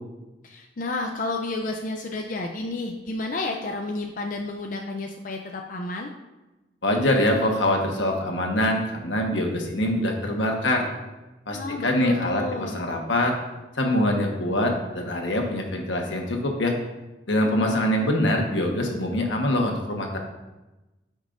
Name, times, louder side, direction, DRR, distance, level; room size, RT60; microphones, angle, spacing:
voice 1, 0.4-6.1 11.5-12.8, left 2 dB, 45° left, 2 dB, 0.5 m, -31 dB
voice 2, 6.8-10.9 11.5-13.3 13.8-16.7 17.3-20.2, left 1 dB, 85° left, 1 dB, 1.3 m, -24 dB
13.5 x 5.4 x 2.6 m, 1.1 s
head